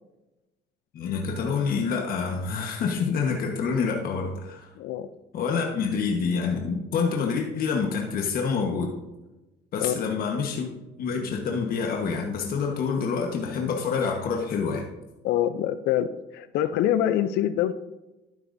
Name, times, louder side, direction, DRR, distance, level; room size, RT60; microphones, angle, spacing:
voice 1, 0.9-4.7 5.3-8.9 9.7-10.7 11.0-14.9, left 5 dB, 60° left, 1 dB, 1.3 m, -27 dB
voice 2, 4.7-5.1 9.8-9.9 15.2-17.7, left 11 dB, 85° left, 13 dB, 0.5 m, -25 dB
11.5 x 10.5 x 2.7 m, 1.0 s
cardioid pair, 110°, 17 cm